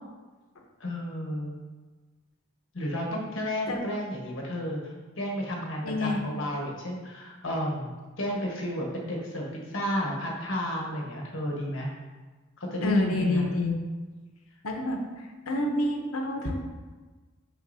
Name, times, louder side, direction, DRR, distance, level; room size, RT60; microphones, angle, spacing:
voice 1, 0.8-1.5 2.7-11.9 12.6-13.5, equal, 65° left, -1 dB, 1.3 m, -32 dB
voice 2, 5.8-6.2 12.8-13.8 14.6-16.6, left 2 dB, 80° left, 2 dB, 0.9 m, -28 dB
6.3 x 5.8 x 2.7 m, 1.3 s
head